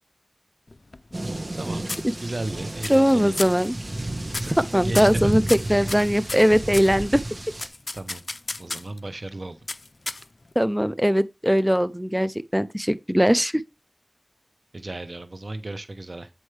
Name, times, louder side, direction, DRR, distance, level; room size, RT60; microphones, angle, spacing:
sound 1, 0.7-1.6 1.9-2.5 2.8-3.1 3.4-3.7 4.3-4.6 4.9-6.9 7.6-9.0 9.7-10.5, left 2 dB, 80° left, 0.4 m, -33 dB
sound 2, 1.1-7.7, right 1 dB, 50° right, 1.1 m, -32 dB
voice 1, 1.6-1.9 2.2-3.5 4.4-5.4 7.9-8.2 8.6-9.6 14.7-16.3, right 2 dB, 80° right, 0.8 m, -34 dB
voice 2, 2.9-3.8 4.7-7.2 10.6-13.6, equal, 5° right, 0.4 m, -20 dB
8.0 x 4.4 x 3.2 m
wide cardioid pair, 50°, 0 cm